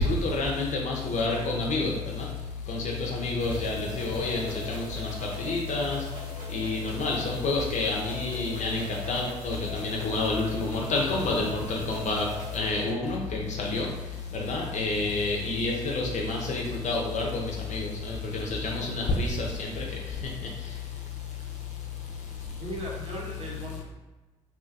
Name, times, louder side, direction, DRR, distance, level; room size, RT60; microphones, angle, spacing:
voice 1, 0.0-22.6, left 3 dB, 50° left, -1 dB, 0.6 m, -29 dB
sound 1, 3.4-12.6, equal, 65° right, 0.9 m, -41 dB
voice 2, 22.6-23.8, right 1 dB, 40° right, -4 dB, 0.8 m, -37 dB
2.6 x 2.2 x 2.6 m, 1.1 s
hypercardioid pair, 45°, 16 cm